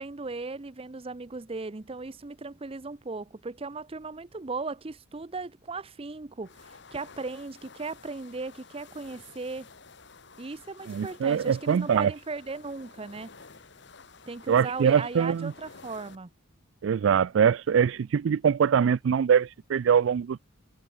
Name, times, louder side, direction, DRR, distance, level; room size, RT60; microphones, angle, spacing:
voice 1, 0.0-9.7 10.4-13.3 14.3-16.3, right 3 dB, 30° right, 0.6 m, -37 dB
sound 1, 6.4-16.2, left 4 dB, 60° left, 2.0 m, -52 dB
voice 2, 10.9-12.1 14.5-15.5 16.8-20.4, right 7 dB, 70° right, 0.3 m, -23 dB
head